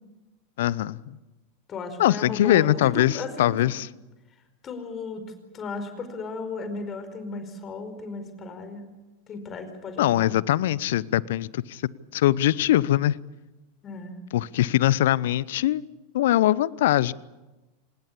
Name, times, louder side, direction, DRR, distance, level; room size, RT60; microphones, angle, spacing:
voice 1, 0.6-1.2 2.0-3.9 10.0-11.8 12.1-13.2 14.3-15.8 16.1-17.1, left 13 dB, 65° left, 22 dB, 0.7 m, -22 dB
voice 2, 1.7-3.5 4.6-5.2 5.5-8.8 9.3-10.4 13.8-14.2, left 4 dB, 30° left, 8 dB, 4.9 m, -35 dB
26.5 x 19.5 x 8.6 m, 1.1 s
hypercardioid pair, 90°, 0 cm